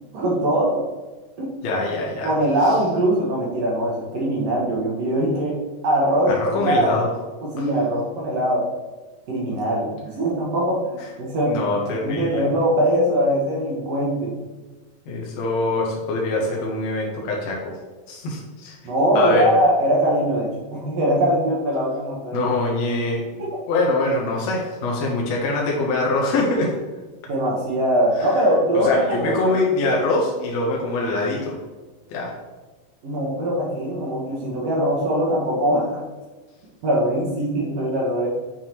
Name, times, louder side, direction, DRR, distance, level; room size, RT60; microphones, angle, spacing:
voice 1, 0.1-0.8 1.4-1.5 2.2-5.6 5.8-7.0 7.4-8.7 9.3-11.5 11.8-14.4 18.8-22.5 27.3-29.5 33.0-36.0 36.8-38.3, equal, 65° right, -3 dB, 1.8 m, -21 dB
voice 2, 1.6-2.3 6.3-7.1 9.5-9.6 11.4-12.5 15.1-17.7 18.1-18.8 19.1-19.4 22.3-26.7 28.2-28.4 28.7-31.6 32.1-32.3, left 2 dB, 70° left, -2 dB, 1.7 m, -24 dB
7.1 x 4.6 x 2.9 m, 1.2 s
omnidirectional pair, 4.0 m